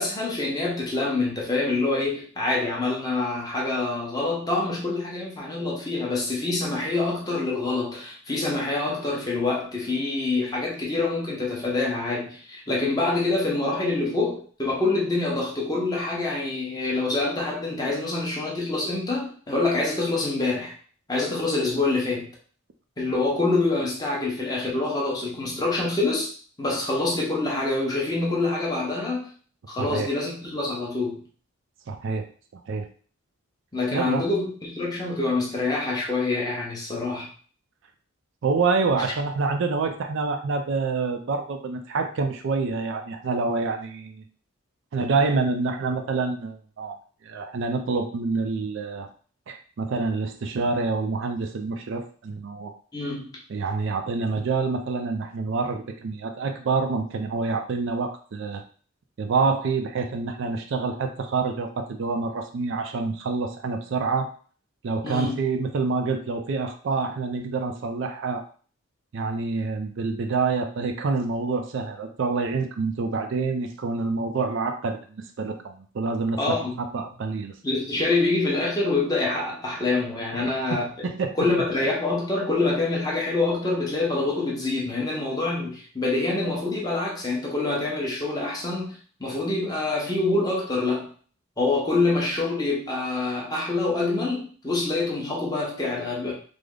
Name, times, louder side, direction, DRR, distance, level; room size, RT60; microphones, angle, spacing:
voice 1, 0.0-20.7 21.1-22.3 23.0-26.3 26.6-29.3 29.7-31.2 33.7-37.3 52.9-53.3 65.0-65.4 76.4-76.8 77.6-81.1 81.4-91.1 91.6-96.3, left 3 dB, 20° left, -3 dB, 0.8 m, -26 dB
voice 2, 29.8-30.1 31.9-32.3 32.7-32.9 33.9-34.2 38.4-44.2 44.9-46.9 47.2-49.1 49.5-52.7 53.5-58.6 59.2-64.3 64.8-68.4 69.1-77.5 80.3-80.4 81.0-81.4, right 4 dB, 60° right, 6 dB, 0.4 m, -27 dB
3.3 x 2.0 x 3.6 m, 0.44 s
head